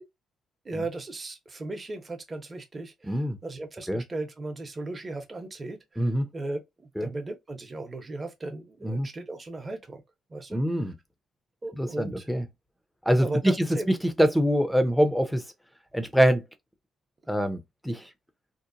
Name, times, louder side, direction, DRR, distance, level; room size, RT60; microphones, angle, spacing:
voice 1, 0.6-6.6 7.0-10.0 10.3-10.6 11.6-12.3 13.2-13.9, right 2 dB, 30° right, 0.8 m, -36 dB
voice 2, 3.0-3.4 3.9-4.0 6.0-6.3 7.0-7.1 8.8-9.1 10.5-10.9 11.8-12.4 13.1-15.4 15.9-16.4 17.3-17.6 17.8-18.0, equal, ahead, 0.6 m, -24 dB
2.8 x 2.1 x 2.5 m
cardioid pair, 90°, 0 cm